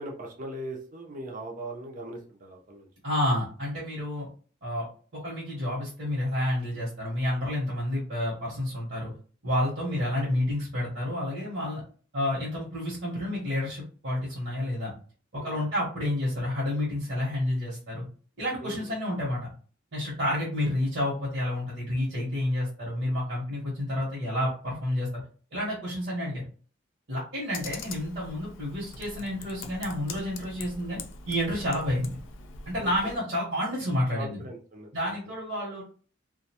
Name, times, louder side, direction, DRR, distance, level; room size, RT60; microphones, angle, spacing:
voice 1, 0.0-2.9 9.8-10.0 15.3-15.7 18.6-18.9 27.1-27.2 32.8-33.2 34.2-35.3, right 1 dB, 40° right, 1 dB, 0.6 m, -40 dB
voice 2, 3.0-4.3 4.6-4.9 5.1-9.1 9.4-11.8 12.1-14.9 15.3-18.0 18.4-19.5 19.9-25.2 25.5-26.5 27.1-31.0 31.3-32.2 32.7-34.4 34.9-35.8, left 1 dB, 60° right, -8 dB, 1.0 m, -30 dB
Computer keyboard, 27.5-33.2, left 4 dB, 75° left, 0.4 m, -43 dB
2.4 x 2.2 x 2.8 m, 0.41 s
head